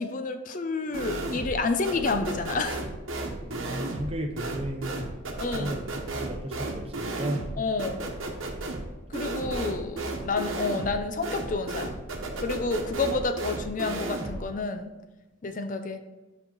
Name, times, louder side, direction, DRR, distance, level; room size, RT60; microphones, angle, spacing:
voice 1, 0.0-2.8 5.4-5.7 7.6-8.1 9.1-12.0 12.4-14.9 15.4-16.0, left 3 dB, 40° left, 8 dB, 0.5 m, -29 dB
sound 1, 0.9-1.6 1.8-14.5, right 2 dB, 85° right, 1.1 m, -34 dB
voice 2, 3.4-5.1 5.5-5.9 6.1-7.5, right 1 dB, 30° right, 4 dB, 0.8 m, -34 dB
7.5 x 5.5 x 3.8 m, 1.1 s
head